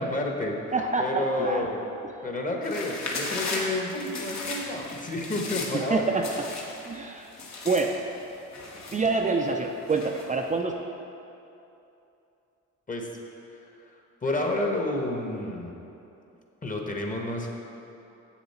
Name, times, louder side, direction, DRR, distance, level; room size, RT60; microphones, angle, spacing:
voice 1, 0.0-0.6 1.0-1.8 2.2-6.1 12.9-13.1 13.5-13.6 14.2-15.7 16.6-17.5, left 2 dB, 25° left, 1 dB, 1.2 m, -30 dB
voice 2, 0.7-1.7 5.7-6.3 6.9-7.3 7.6-8.0 8.9-10.7, right 3 dB, 25° right, 2 dB, 0.5 m, -26 dB
sound 1, 2.6-5.9 6.2-7.0 7.2-9.4 9.9-10.4, left 3 dB, 65° left, 1.4 m, -36 dB
7.9 x 7.2 x 4.3 m, 2.8 s
cardioid pair, 90°, 30 cm